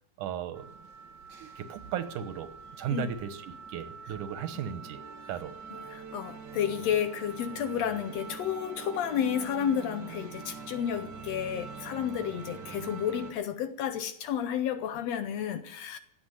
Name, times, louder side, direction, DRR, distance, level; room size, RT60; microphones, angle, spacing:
voice 1, 0.2-0.7 1.4-2.5 2.8-5.0 5.3-5.5, right 9 dB, 90° right, 2.7 m, -36 dB
sound 1, 0.5-13.3, right 5 dB, 45° right, 1.6 m, -44 dB
voice 2, 5.8-16.0, left 9 dB, 70° left, 1.7 m, -31 dB
15.5 x 8.1 x 9.3 m
omnidirectional pair, 3.5 m